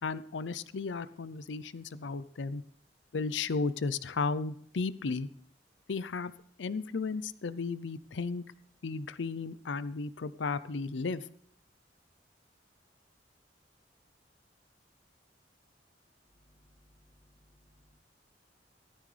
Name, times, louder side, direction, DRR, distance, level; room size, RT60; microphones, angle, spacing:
voice 1, 0.0-2.6 3.1-5.3 5.9-6.3 6.6-8.4 8.8-11.3, left 4 dB, 90° left, 15 dB, 0.6 m, -34 dB
voice 2, 16.2-17.9, left 1 dB, 15° right, 2 dB, 2.1 m, -65 dB
15.0 x 13.0 x 3.3 m, 0.66 s
head